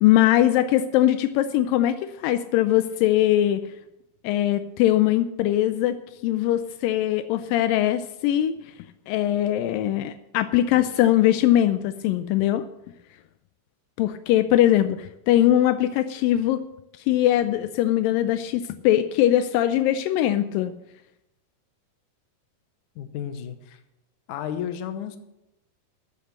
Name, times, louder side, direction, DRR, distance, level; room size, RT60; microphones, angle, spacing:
voice 1, 0.0-3.6 4.2-8.5 9.1-12.6 14.0-16.6 17.1-20.7, left 13 dB, 85° left, 11 dB, 2.0 m, -21 dB
voice 2, 23.0-23.8 24.3-25.2, left 9 dB, 70° left, 9 dB, 1.9 m, -32 dB
13.0 x 7.8 x 6.6 m, 0.89 s
omnidirectional pair, 4.5 m